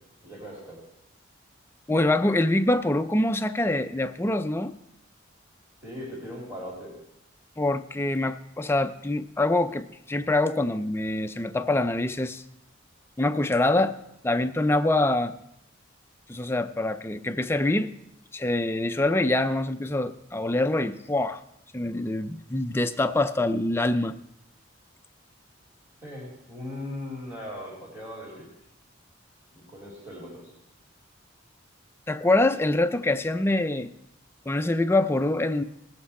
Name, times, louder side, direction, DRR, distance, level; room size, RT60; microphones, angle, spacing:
voice 1, 0.2-0.8 5.8-7.0 26.0-28.5 29.5-30.5, left 1 dB, 15° right, -6 dB, 3.0 m, -39 dB
voice 2, 1.9-4.7 7.6-12.4 13.2-13.9 14.2-15.3 16.3-17.9 18.3-21.4 21.7-24.2 32.1-33.9 34.5-35.6, left 2 dB, 10° left, 9 dB, 0.4 m, -25 dB
20.0 x 7.9 x 4.2 m, 0.83 s
head